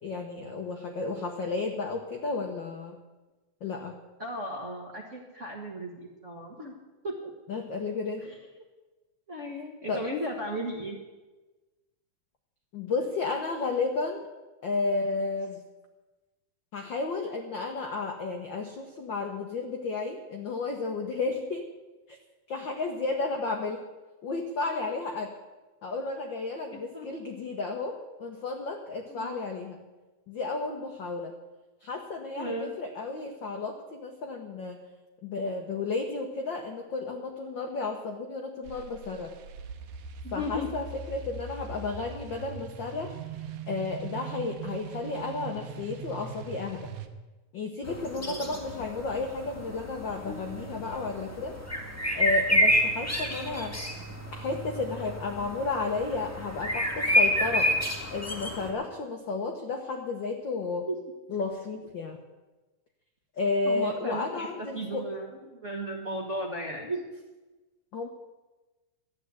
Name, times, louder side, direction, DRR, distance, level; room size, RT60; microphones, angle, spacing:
voice 1, 0.0-3.0 3.6-4.0 7.5-8.2 9.9-10.0 12.7-14.3 14.6-15.6 16.7-21.7 22.1-22.2 22.5-23.8 24.2-25.3 25.8-29.8 30.3-31.3 31.8-34.8 35.2-39.4 40.3-43.2 43.7-46.9 47.5-51.6 52.1-53.8 54.3-57.7 58.1-60.9 61.3-62.2 63.4-65.0 67.9-68.1, left 3 dB, 80° left, 4 dB, 1.0 m, -32 dB
voice 2, 4.2-6.7 7.0-7.3 8.3-8.4 9.3-11.0 26.7-27.1 29.1-29.4 32.4-32.7 40.2-40.8 48.2-48.6 60.9-61.0 63.6-67.0, equal, 40° right, -1 dB, 1.2 m, -35 dB
sound 1, 38.6-47.1, right 6 dB, 80° right, 2.3 m, -41 dB
sound 2, 47.8-58.7, equal, 15° left, 0.6 m, -29 dB
12.5 x 8.9 x 8.1 m, 1.2 s
omnidirectional pair, 3.6 m